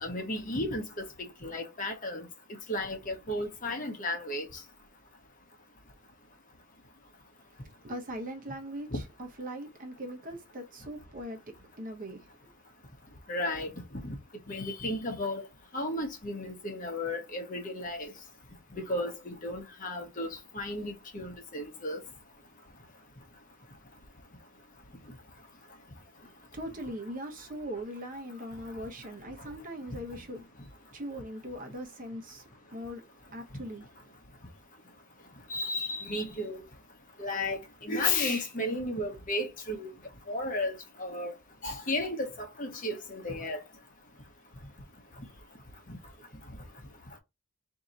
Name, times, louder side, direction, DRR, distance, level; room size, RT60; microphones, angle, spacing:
voice 1, 0.0-1.0 1.4-2.2 2.7-4.5 8.9-9.0 13.3-13.7 14.5-15.5 15.7-18.1 18.7-20.3 20.5-22.0 35.5-36.6 37.2-39.9 40.3-41.3 41.6-42.3 42.6-43.6, left 2 dB, 40° left, 0.9 m, -33 dB
voice 2, 7.8-12.3 26.2-30.4 30.9-33.0 33.3-34.1, equal, 40° right, 1.0 m, -40 dB
3.7 x 2.8 x 4.0 m
head